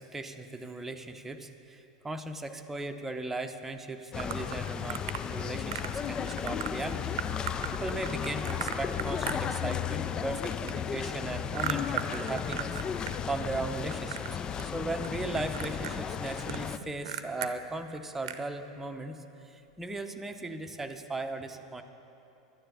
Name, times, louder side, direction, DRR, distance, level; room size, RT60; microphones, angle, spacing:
voice 1, 0.0-5.0 5.3-12.8 13.3-14.3 14.7-21.8, right 2 dB, 10° right, 5 dB, 0.9 m, -37 dB
sound 1, 4.1-16.8, left 8 dB, 25° left, 0.4 m, -34 dB
sound 2, 4.2-5.2 5.7-6.0 6.3-6.7 7.2-9.9 10.2-13.2 13.4-14.3 14.6-15.1 15.3-17.5 17.9-18.0 18.2-18.5, right 11 dB, 60° right, 0.7 m, -37 dB
12.0 x 10.0 x 6.9 m, 2.9 s
figure-of-eight pair, 85°, 3 cm